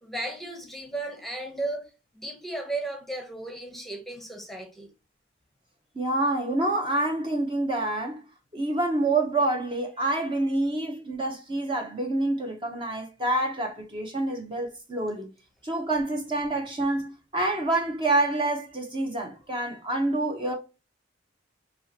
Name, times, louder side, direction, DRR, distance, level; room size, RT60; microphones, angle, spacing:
voice 1, 0.0-4.9, right 2 dB, ahead, 0.9 m, -35 dB
voice 2, 6.0-8.2 8.5-15.3 15.6-20.5, right 2 dB, 25° right, 0.7 m, -27 dB
5.4 x 2.9 x 2.7 m
head